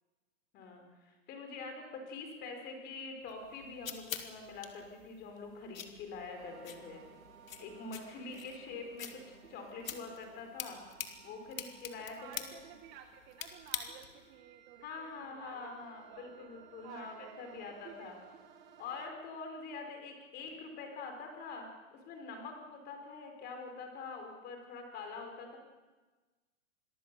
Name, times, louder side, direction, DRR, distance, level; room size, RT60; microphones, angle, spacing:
voice 1, 0.5-7.0 7.6-10.8 11.2-12.5 14.8-18.2 18.8-25.6, left 4 dB, 25° left, 4 dB, 4.6 m, -45 dB
sound 1, 3.3-14.3, left 8 dB, 80° left, 2.8 m, -46 dB
voice 2, 6.3-7.1 7.6-8.4 12.1-16.5 16.8-18.1, right 9 dB, 25° right, 7 dB, 1.1 m, -54 dB
sound 2, 6.3-19.1, right 6 dB, 80° right, 2.9 m, -59 dB
27.0 x 21.0 x 6.9 m, 1.3 s
hypercardioid pair, 155°, 40 cm